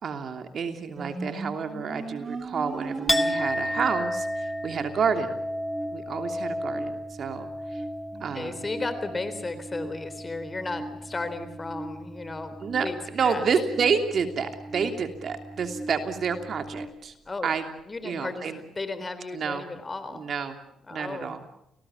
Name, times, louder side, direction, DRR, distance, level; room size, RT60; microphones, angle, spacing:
voice 1, 0.0-5.4 5.9-7.8 8.2-8.7 12.6-17.1 17.4-17.7 18.0-18.6 19.3-19.7 20.1-20.6 20.9-21.4, right 6 dB, 55° right, 6 dB, 3.0 m, -29 dB
sound 1, 1.0-16.9, right 2 dB, 30° right, 3.0 m, -39 dB
Chink clink, 3.1-10.8 11.1-11.8, left 1 dB, 5° left, 1.3 m, -32 dB
voice 2, 8.1-13.4 17.3-17.5 17.9-20.3 20.9-21.4, left 3 dB, 25° left, 11 dB, 3.7 m, -35 dB
30.0 x 19.0 x 7.1 m, 0.81 s
cardioid pair, 90°, 0 cm